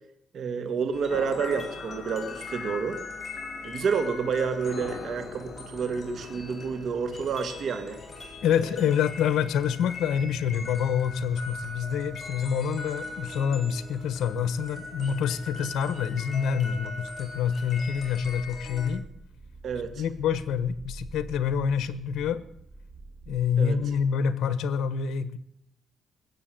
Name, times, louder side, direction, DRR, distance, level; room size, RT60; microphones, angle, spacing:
voice 1, 0.3-3.0 3.6-8.0 19.6-20.0 23.6-23.8, right 5 dB, 60° right, 8 dB, 1.9 m, -29 dB
sound 1, 0.9-18.9, left 3 dB, 30° left, 3.7 m, -41 dB
sound 2, 1.1-8.6, left 5 dB, 50° left, 1.9 m, -43 dB
voice 2, 8.4-19.0 20.0-22.4 23.3-25.4, left 7 dB, 75° left, 15 dB, 1.1 m, -27 dB
sound 3, 17.7-24.1, right 2 dB, 25° right, 2.5 m, -46 dB
19.5 x 8.0 x 7.8 m, 0.73 s
cardioid pair, 90°, 0 cm